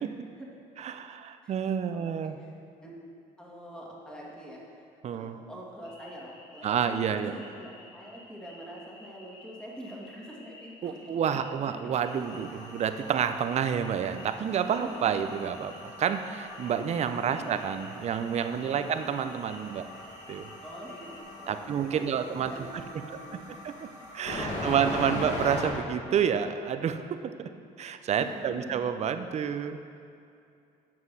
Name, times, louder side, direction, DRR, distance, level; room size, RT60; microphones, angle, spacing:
voice 1, 0.8-2.4 5.0-5.4 6.6-7.3 10.8-19.8 20.3-20.5 21.5-22.8 23.1-23.2 23.6-23.9 24.1-27.0 27.4-27.5 27.8-29.8, right 8 dB, 45° right, 9 dB, 0.6 m, -29 dB
voice 2, 1.9-2.5 2.8-2.9 3.4-12.0 14.4-15.4 17.1-17.7 18.6-19.1 19.4-19.9 20.6-23.5 24.3-25.1 28.2-28.8, equal, 5° left, -4 dB, 2.0 m, -46 dB
sound 1, 5.8-21.2, left 1 dB, 65° left, 1.7 m, -53 dB
sound 2, 12.1-25.7, left 1 dB, 50° left, 2.1 m, -40 dB
7.6 x 6.2 x 6.1 m, 2.5 s
cardioid pair, 90°, 15 cm